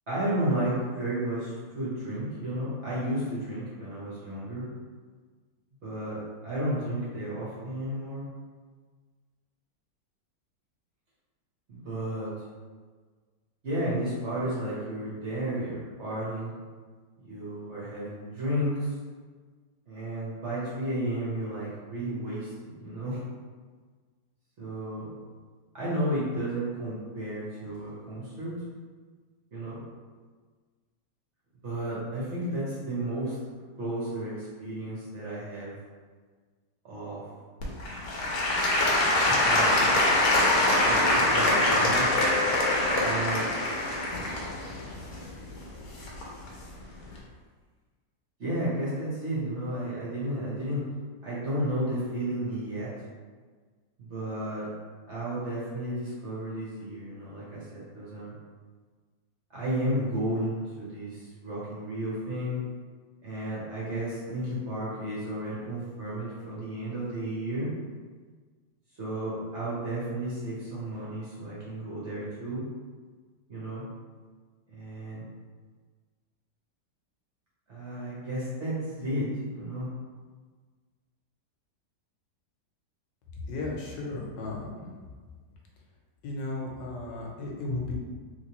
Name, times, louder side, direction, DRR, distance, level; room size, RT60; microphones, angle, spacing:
voice 1, 0.1-4.7 5.8-8.2 11.7-12.3 13.6-16.5 17.2-18.9 19.9-23.2 24.6-25.1 25.7-28.6 29.5-29.8 31.6-33.4 33.8-35.7 36.8-37.3 39.3-40.0 40.8-42.1 42.9-43.4 48.4-50.8 51.2-52.9 54.0-54.7 55.1-58.3 59.5-62.6 63.2-67.7 69.0-72.6 73.5-73.8 74.7-75.2 77.7-79.9, right 1 dB, 50° right, -8 dB, 0.9 m, -32 dB
Applause / Crowd, 37.6-46.5 47.1-47.2, left 1 dB, 65° left, 1.1 m, -24 dB
voice 2, 83.5-84.9 86.2-87.9, left 2 dB, 85° left, -2 dB, 1.4 m, -35 dB
3.3 x 2.9 x 2.9 m, 1.5 s
omnidirectional pair, 1.9 m